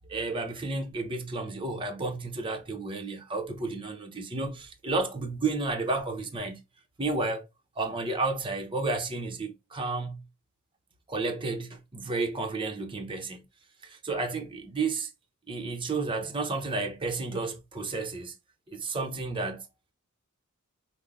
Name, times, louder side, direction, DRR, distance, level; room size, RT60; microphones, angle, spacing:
voice 1, 0.1-6.6 7.0-7.5 7.8-10.2 11.1-13.4 13.8-15.1 15.5-18.3 18.7-19.7, right 3 dB, 25° right, 0.9 m, -32 dB
5.8 x 2.2 x 3.6 m
head